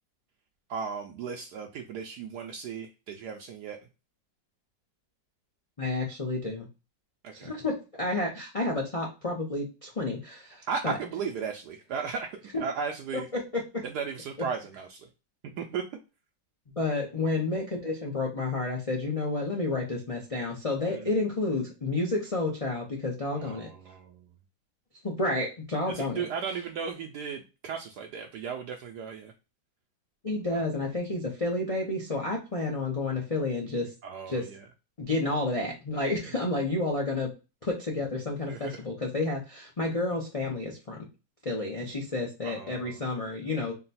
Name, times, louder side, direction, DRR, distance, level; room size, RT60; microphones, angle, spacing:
voice 1, 0.7-3.8 7.2-7.5 10.7-12.3 12.6-13.3 13.8-15.1 15.6-15.8 20.9-21.2 23.3-24.3 25.9-29.3 30.5-30.6 34.0-34.6 36.0-36.2 38.5-38.8 42.4-43.0, right 6 dB, 75° right, 3 dB, 1.0 m, -36 dB
voice 2, 5.8-6.7 7.3-10.9 12.5-12.6 13.3-13.4 13.7-13.8 16.8-23.7 25.0-26.2 30.2-33.9 34.3-34.4 35.0-37.3 37.6-41.1 41.4-43.7, left 2 dB, 55° left, -2 dB, 0.4 m, -30 dB
3.9 x 2.2 x 4.0 m, 0.29 s
omnidirectional pair, 2.0 m